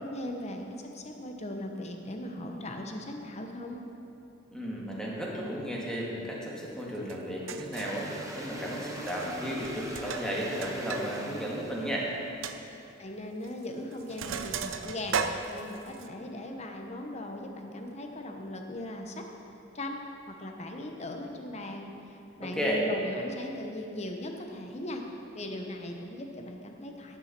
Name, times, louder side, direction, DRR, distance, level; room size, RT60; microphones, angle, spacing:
voice 1, 0.0-0.6 0.9-3.8 13.0-15.2 15.5-19.3 19.7-20.0 20.3-21.9 22.4-25.0 25.3-27.2, left 1 dB, 35° left, 3 dB, 0.9 m, -38 dB
voice 2, 4.5-12.1 22.6-22.8, equal, 5° left, -4 dB, 1.6 m, -33 dB
Sink (filling or washing), 7.1-7.2 7.5-8.0 9.0-9.4 9.6-11.1 11.4-11.5 11.9-12.0 12.4-12.6 13.4-13.6 13.9-16.1, right 6 dB, 90° right, 0.5 m, -35 dB
sound 1, 7.7-12.3, right 1 dB, 15° right, 1.1 m, -42 dB
10.5 x 7.0 x 5.9 m, 2.8 s
head